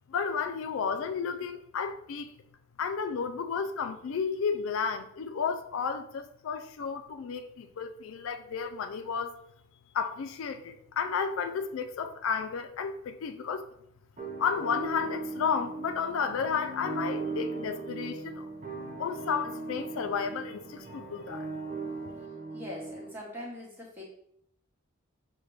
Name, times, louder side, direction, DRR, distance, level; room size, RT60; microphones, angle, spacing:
voice 1, 0.1-2.3 2.8-9.3 9.9-13.7 14.4-18.5 19.0-21.5, left 6 dB, 70° left, 0.3 m, -32 dB
sound 1, 14.2-23.1, right 3 dB, 35° right, 0.5 m, -38 dB
voice 2, 22.5-24.0, left 1 dB, 10° right, 1.1 m, -42 dB
6.4 x 2.2 x 3.1 m
head